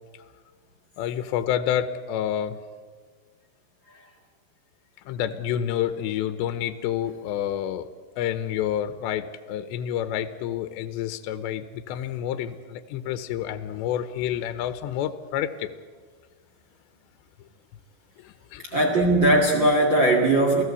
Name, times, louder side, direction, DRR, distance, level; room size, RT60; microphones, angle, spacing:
voice 1, 1.0-2.6 5.1-7.9 8.2-15.7 18.2-18.8, left 10 dB, 85° left, 11 dB, 3.1 m, -29 dB
voice 2, 18.7-20.6, right 1 dB, 40° right, 1 dB, 1.9 m, -19 dB
28.5 x 16.0 x 8.3 m, 1.5 s
omnidirectional pair, 4.9 m